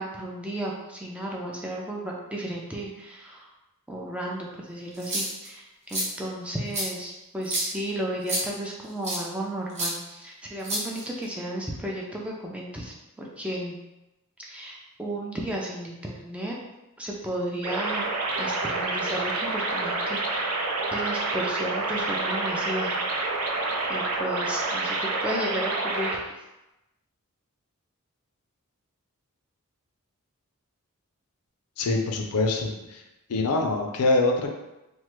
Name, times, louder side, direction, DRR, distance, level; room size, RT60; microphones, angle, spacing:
voice 1, 0.0-3.5 3.9-13.8 14.4-16.6 17.0-18.1 18.4-20.6 20.9-23.5 23.9-26.4, right 1 dB, 5° right, -3 dB, 0.3 m, -34 dB
sound 1, 4.9-5.5 5.9-6.1 6.7-6.9 7.4-7.7 8.3-8.4 9.0-9.2 9.8-9.9 10.6-11.2, right 1 dB, 30° right, 0.7 m, -28 dB
sound 2, 17.6-26.2, right 3 dB, 80° right, 0.5 m, -28 dB
voice 2, 31.8-33.0 33.3-34.5, left 2 dB, 80° left, 3 dB, 0.5 m, -24 dB
3.1 x 2.1 x 3.0 m, 0.97 s
head